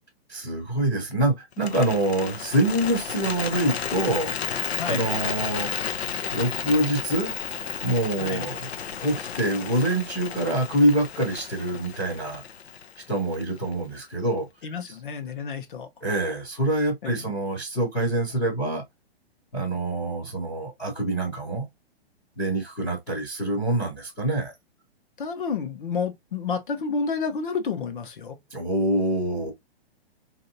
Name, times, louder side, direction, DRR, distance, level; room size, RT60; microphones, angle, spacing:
voice 1, 0.3-4.3 4.9-5.7 6.3-7.3 7.8-8.7 9.0-12.4 13.1-14.5 14.9-15.0 16.0-18.8 19.5-21.7 22.4-24.5 28.5-29.5, right 1 dB, 5° left, 0.6 m, -25 dB
Bird, 1.5-13.7, left 7 dB, 85° left, 0.8 m, -33 dB
voice 2, 14.6-15.9 17.0-17.3 25.2-28.4, left 5 dB, 50° left, 1.0 m, -30 dB
4.3 x 2.7 x 2.6 m
hypercardioid pair, 180°, 32 cm